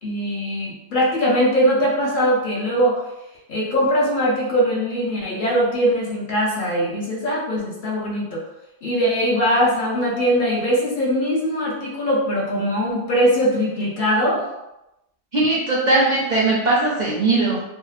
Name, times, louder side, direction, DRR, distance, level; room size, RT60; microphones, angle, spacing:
voice 1, 0.0-3.0 3.5-8.4 8.8-14.5, equal, 55° left, -4 dB, 0.6 m, -21 dB
voice 2, 15.3-17.6, right 2 dB, 55° right, -5 dB, 0.5 m, -19 dB
2.7 x 2.0 x 2.4 m, 0.91 s
omnidirectional pair, 1.1 m